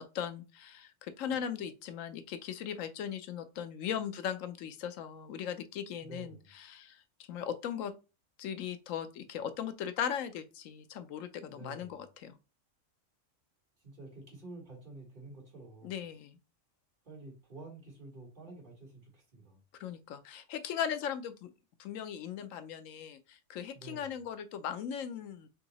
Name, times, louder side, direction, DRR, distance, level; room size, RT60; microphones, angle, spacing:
voice 1, 0.0-7.0 7.3-7.9 8.4-12.4 15.8-16.4 19.7-21.5 21.8-25.5, left 8 dB, 80° left, 1.0 m, -38 dB
voice 2, 6.0-6.5 11.5-12.0 13.8-16.0 17.0-19.6 23.7-24.1, right 2 dB, 40° right, 1.9 m, -49 dB
3.9 x 2.7 x 4.0 m
omnidirectional pair, 1.3 m